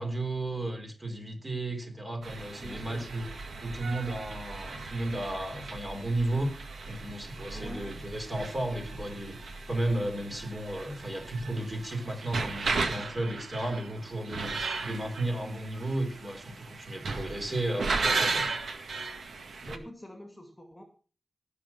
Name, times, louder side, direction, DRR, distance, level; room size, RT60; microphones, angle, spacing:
voice 1, 0.0-3.3 3.6-6.5 6.9-9.4 9.7-14.6 14.8-18.5, right 1 dB, 25° right, 4 dB, 3.8 m, -33 dB
sound 1, 2.2-19.8, right 3 dB, 75° right, 1.9 m, -36 dB
voice 2, 2.5-3.1 7.5-8.1 19.6-20.8, left 1 dB, 10° left, 4 dB, 2.3 m, -45 dB
18.0 x 6.5 x 6.0 m, 0.38 s
wide cardioid pair, 115°, 0 cm